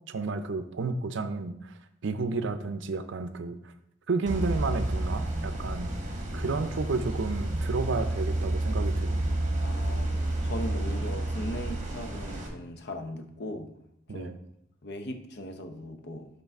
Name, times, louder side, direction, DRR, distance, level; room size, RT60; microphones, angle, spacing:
voice 1, 0.1-1.7 2.0-3.6 4.1-5.9 6.3-9.3 14.1-14.3, right 3 dB, 65° right, 10 dB, 0.5 m, -31 dB
sound 1, 4.3-12.5, right 1 dB, 40° right, 1.1 m, -30 dB
voice 2, 9.6-10.1 10.4-13.7 14.1-14.3 14.8-16.3, left 1 dB, 55° left, 6 dB, 0.8 m, -38 dB
5.8 x 3.9 x 5.3 m, 0.76 s
head